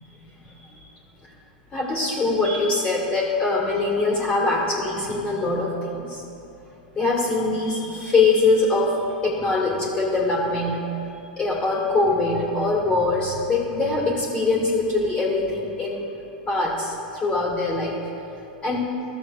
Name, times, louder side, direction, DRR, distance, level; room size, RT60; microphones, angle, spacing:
voice 1, 0.4-0.8 1.7-6.2 6.9-16.0 16.5-18.1 18.6-18.9, left 3 dB, 20° left, -3 dB, 1.8 m, -23 dB
14.0 x 7.1 x 2.4 m, 2.8 s
figure-of-eight pair, 90°, 5 cm